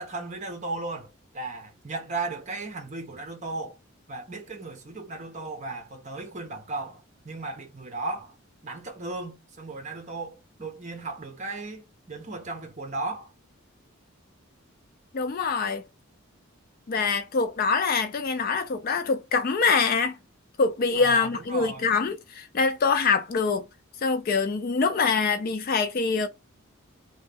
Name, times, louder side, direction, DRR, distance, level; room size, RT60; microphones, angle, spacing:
voice 1, 0.0-3.8 4.1-8.4 8.6-13.3 20.9-21.9, right 3 dB, 35° right, 0.8 m, -36 dB
voice 2, 15.1-15.8 16.9-20.2 20.6-23.7 24.0-26.3, left 4 dB, 45° left, 0.4 m, -24 dB
3.0 x 2.2 x 3.4 m
head